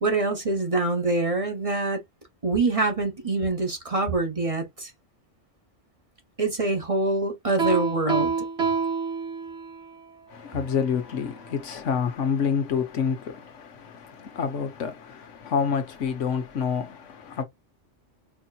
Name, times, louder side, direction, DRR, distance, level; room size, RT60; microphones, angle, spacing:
voice 1, 0.0-2.0 2.4-4.9 6.4-8.3, right 2 dB, 30° right, 1.0 m, -25 dB
Piano, 7.6-9.9, right 5 dB, 65° right, 1.7 m, -27 dB
voice 2, 10.3-17.4, left 6 dB, 90° left, 1.3 m, -28 dB
4.7 x 2.8 x 2.3 m
omnidirectional pair, 1.2 m